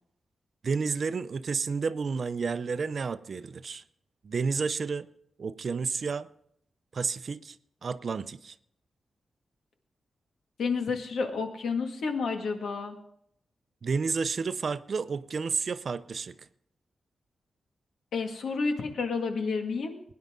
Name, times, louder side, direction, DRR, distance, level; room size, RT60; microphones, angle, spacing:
voice 1, 0.6-3.8 4.2-5.1 5.4-6.3 6.9-7.6 7.8-8.5 13.8-16.4, right 5 dB, 45° right, 0.5 m, -31 dB
voice 2, 10.6-13.0 18.1-20.0, left 4 dB, 85° left, 2.0 m, -30 dB
21.5 x 10.5 x 3.7 m
wide cardioid pair, 175°, 0 cm